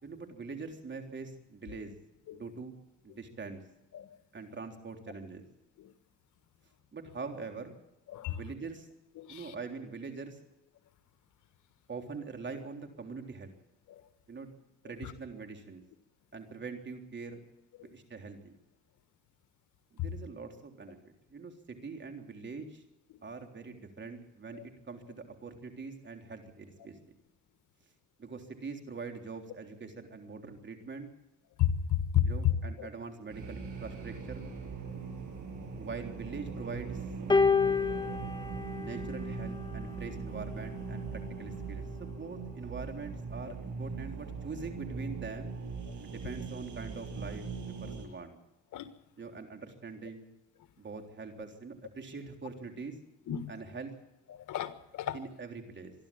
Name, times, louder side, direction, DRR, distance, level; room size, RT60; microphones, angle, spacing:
voice 1, 0.0-1.9 2.4-2.7 3.0-3.6 4.3-5.4 6.9-7.8 8.3-8.9 9.3-10.4 11.9-13.5 14.3-14.5 14.8-15.8 16.3-17.4 17.9-18.6 19.9-21.0 21.3-22.8 23.2-27.2 28.2-31.1 32.3-34.5 35.8-37.1 38.7-45.5 46.0-47.5 47.8-48.4 49.2-50.3 50.8-53.0 53.5-53.9 55.1-55.9, right 4 dB, 40° right, 3.6 m, -43 dB
voice 2, 8.1-8.4 9.2-9.5 13.9-14.0 15.0-15.1 17.8-17.9 20.0-20.1 24.5-24.7 31.6-32.9 34.9-35.0 47.8-47.9 48.7-48.9 53.3-53.5 54.3-55.2, left 10 dB, 80° left, 1.6 m, -32 dB
sound 1, 33.3-48.0, right 5 dB, 75° right, 7.1 m, -40 dB
sound 2, 37.3-39.8 40.8-41.0, left 5 dB, 15° left, 1.7 m, -29 dB
26.0 x 11.5 x 8.8 m
cardioid pair, 90°, 30 cm